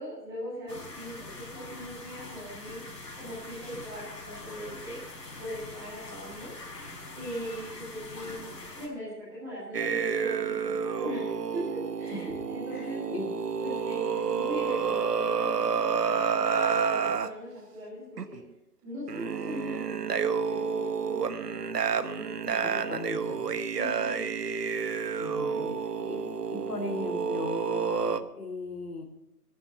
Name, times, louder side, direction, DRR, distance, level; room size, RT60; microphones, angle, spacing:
voice 1, 0.0-2.8 3.2-5.0 5.4-6.5 7.1-13.0 13.6-18.4 18.8-22.9 23.2-23.4 23.7-24.3 25.5-26.2, equal, 5° right, -8 dB, 2.5 m, -40 dB
sound 1, 0.7-8.9, left 2 dB, 80° left, 4.8 m, -43 dB
sound 2, 9.7-17.3 18.2-18.4 19.1-28.2, right 6 dB, 70° right, 1.1 m, -29 dB
voice 2, 12.7-13.3 22.6-23.4 25.2-25.7 26.1-26.2 26.5-29.0, left 3 dB, 65° left, 5 dB, 2.8 m, -37 dB
11.5 x 10.0 x 6.8 m, 0.90 s
hypercardioid pair, 170°, 48 cm